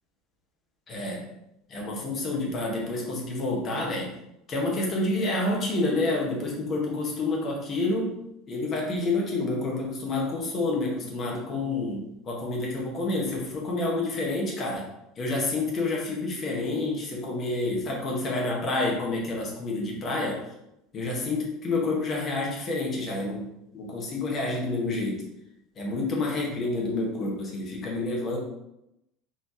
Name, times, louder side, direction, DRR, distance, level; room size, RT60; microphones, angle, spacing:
voice 1, 0.9-1.3 1.7-4.1 4.5-8.1 8.5-14.9 15.2-20.4 20.9-23.4 23.7-25.2 25.8-28.4, left 2 dB, 40° left, -2 dB, 1.5 m, -28 dB
4.5 x 4.0 x 3.0 m, 0.84 s
figure-of-eight pair, 70°, 0 cm